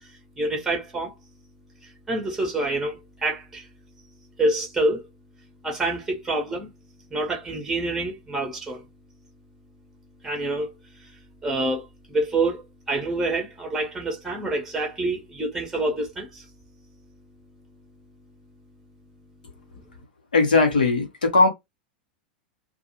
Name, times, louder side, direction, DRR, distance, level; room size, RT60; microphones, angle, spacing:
voice 1, 0.0-1.1 1.8-3.7 4.4-5.1 5.6-6.7 7.1-8.8 10.2-10.7 11.0-11.1 11.4-16.4 19.7-19.8, right 2 dB, 5° right, 0.8 m, -27 dB
voice 2, 20.3-21.5, left 3 dB, 75° left, 1.0 m, -18 dB
2.4 x 2.3 x 3.0 m
figure-of-eight pair, 90°, 5 cm